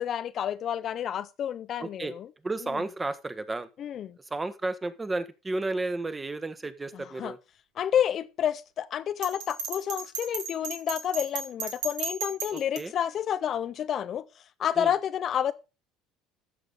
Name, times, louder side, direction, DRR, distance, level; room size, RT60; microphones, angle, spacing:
voice 1, 0.0-2.3 3.8-4.2 6.9-7.3 7.8-14.2 14.6-15.5, left 9 dB, 50° left, 0.6 m, -29 dB
voice 2, 1.8-2.1 2.4-3.7 4.3-7.4 12.5-12.9 14.8-14.9, right 2 dB, 20° right, 1.3 m, -32 dB
Bell, 9.2-12.8, right 5 dB, 75° right, 2.5 m, -34 dB
14.0 x 6.6 x 4.0 m
hypercardioid pair, 70°, 0 cm